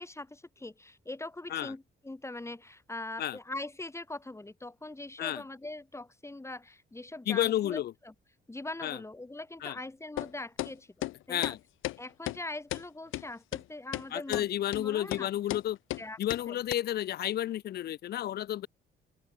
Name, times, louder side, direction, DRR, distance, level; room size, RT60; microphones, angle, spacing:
voice 1, 0.0-8.1 8.5-10.9 11.3-11.6 12.0-14.5 14.7-15.3 16.0-16.2 16.5-16.6, left 2 dB, 15° left, 3.6 m, -42 dB
voice 2, 7.3-7.9 8.8-9.0 9.6-9.8 11.3-11.6 14.1-15.8 16.2-18.7, left 12 dB, 55° left, 0.4 m, -31 dB
sound 1, 10.2-10.3 10.6-10.7 11.0-11.1 11.4-11.6 11.8-12.0 12.3-12.4 12.7-12.8 13.1-13.2 13.5-13.6 13.9-14.1 14.3-14.5 14.7-14.8 15.1-15.2 15.5-15.6 15.9-16.0 16.3-16.4 16.7-16.8, left 16 dB, 85° left, 1.1 m, -34 dB
open air
cardioid pair, 90°, 20 cm